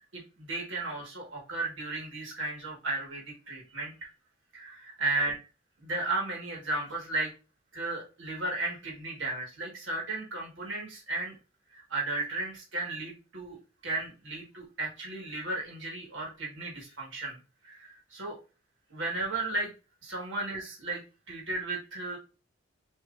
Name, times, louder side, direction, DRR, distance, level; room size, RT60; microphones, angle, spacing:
voice 1, 0.1-4.1 4.5-5.3 5.8-7.3 7.7-11.3 11.7-13.6 13.8-17.4 17.6-18.4 18.9-19.7 20.0-21.0 21.3-22.2, right 2 dB, 60° right, -2 dB, 1.6 m, -34 dB
6.7 x 3.0 x 2.5 m, 0.32 s
head